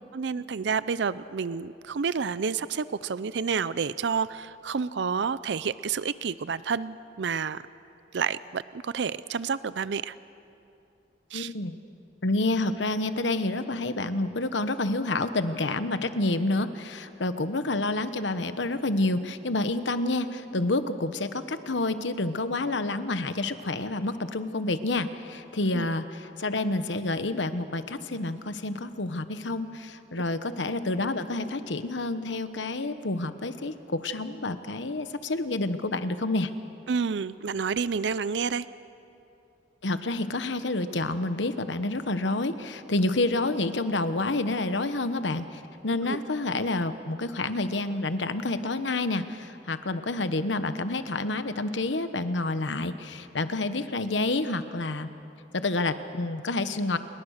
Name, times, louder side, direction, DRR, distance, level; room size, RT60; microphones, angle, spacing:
voice 1, 0.1-7.7 8.1-10.2 11.3-11.5 25.7-25.9 36.9-38.7 46.0-46.2, right 6 dB, 70° right, 16 dB, 0.5 m, -29 dB
voice 2, 11.3-11.8 12.2-36.5 39.8-55.1 55.5-57.0, left 2 dB, 80° left, 11 dB, 1.2 m, -29 dB
28.5 x 21.5 x 6.6 m, 2.8 s
head